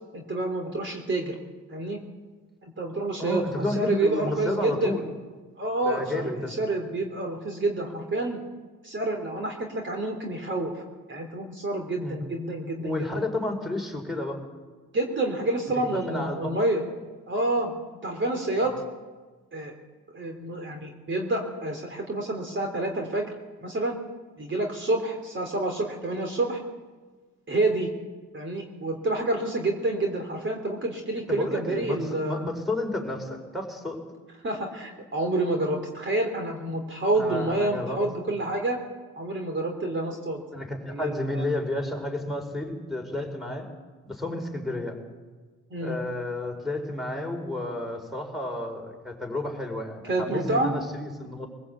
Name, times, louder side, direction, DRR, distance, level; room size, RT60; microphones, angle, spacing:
voice 1, 0.1-1.3 1.7-2.0 2.6-5.0 5.6-8.4 8.8-10.8 11.1-13.2 14.9-16.8 17.3-17.7 18.0-18.8 19.5-19.7 20.1-24.0 24.4-26.6 27.5-27.9 28.3-32.4 34.4-38.8 39.2-40.4 40.9-41.4 45.7-46.0 50.1-50.7, right 2 dB, 40° right, 2 dB, 3.3 m, -28 dB
voice 2, 3.2-5.0 5.8-6.5 12.0-12.2 12.8-14.4 15.8-16.6 31.3-34.0 37.2-38.0 40.5-43.7 44.1-45.0 45.8-51.5, left 2 dB, ahead, 2 dB, 4.8 m, -31 dB
23.5 x 16.0 x 8.3 m, 1.3 s
cardioid pair, 90°, 30 cm